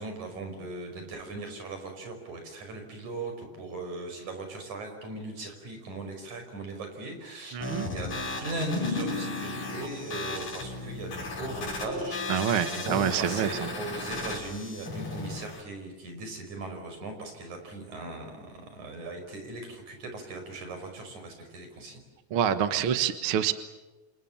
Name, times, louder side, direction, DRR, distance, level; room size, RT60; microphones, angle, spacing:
voice 1, 0.0-8.1 8.4-22.0 22.7-22.9, right 2 dB, 70° right, 5 dB, 6.7 m, -39 dB
voice 2, 7.5-7.9 12.3-13.7 22.3-23.5, right 9 dB, 55° right, 10 dB, 1.8 m, -27 dB
sound 1, 7.6-15.6, left 2 dB, 60° left, 6.9 m, -36 dB
sound 2, 8.1-11.7, left 3 dB, 40° left, 7.0 m, -37 dB
29.5 x 26.5 x 7.3 m, 1.1 s
omnidirectional pair, 3.5 m